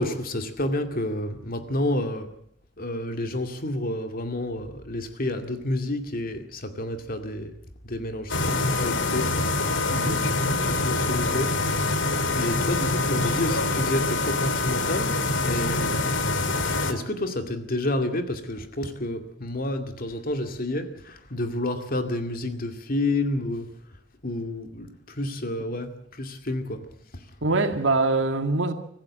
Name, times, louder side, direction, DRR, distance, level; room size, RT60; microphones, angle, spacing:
voice 1, 0.0-2.3 2.8-7.5 7.8-9.3 9.9-11.5 12.3-15.1 15.4-16.1 16.7-23.7 24.2-26.8 27.1-27.2, left 1 dB, 50° left, 2.3 m, -29 dB
sound 1, 8.3-16.9, left 3 dB, 85° left, 2.0 m, -25 dB
voice 2, 9.9-10.2 27.4-28.7, right 3 dB, 80° right, 2.1 m, -24 dB
25.0 x 14.5 x 7.6 m
head